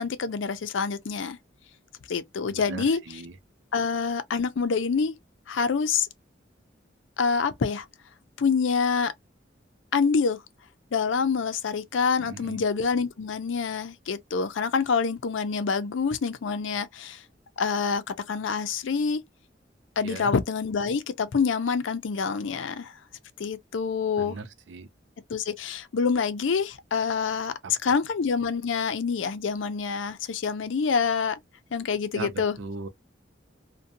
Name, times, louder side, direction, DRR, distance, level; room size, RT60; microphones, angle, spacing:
voice 1, 0.0-1.4 2.1-3.0 3.7-5.1 5.5-6.1 7.2-7.9 8.4-9.1 9.9-10.4 10.9-17.2 17.6-19.2 20.0-22.9 23.4-24.4 25.3-31.4 31.7-32.6, left 5 dB, 85° left, 0.5 m, -26 dB
voice 2, 2.5-3.3 12.2-12.6 20.0-20.3 24.2-24.9 32.1-32.3 32.6-32.9, right 3 dB, 75° right, 0.5 m, -38 dB
2.6 x 2.2 x 2.6 m
head